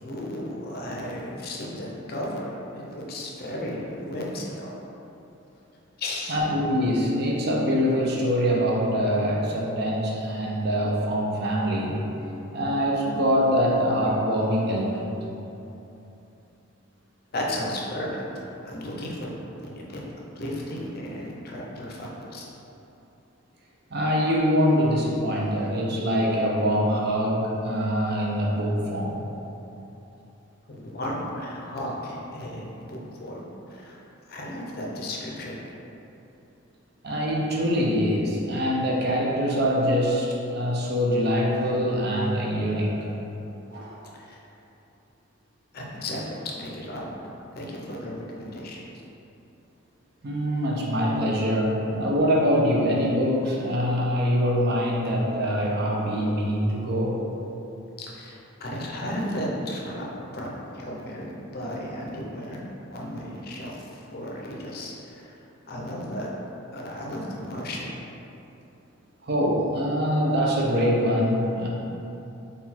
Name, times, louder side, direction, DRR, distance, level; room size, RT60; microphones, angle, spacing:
voice 1, 0.0-4.8 6.0-6.4 17.3-18.0 18.3-19.3 19.7-20.0 20.4-22.4 30.7-33.4 33.7-34.0 34.3-35.6 44.3-44.4 45.7-47.0 47.5-48.8 58.1-60.0 60.3-62.6 62.9-63.8 64.1-64.9 65.2-65.3 65.7-66.3 66.7-67.9, left 1 dB, 45° left, -3 dB, 0.5 m, -34 dB
voice 2, 6.3-12.0 12.5-15.1 20.9-21.0 23.9-29.2 37.0-43.1 43.7-44.0 50.2-57.2 69.2-71.7, equal, 50° right, -3 dB, 0.6 m, -24 dB
3.9 x 2.4 x 4.2 m, 2.9 s
head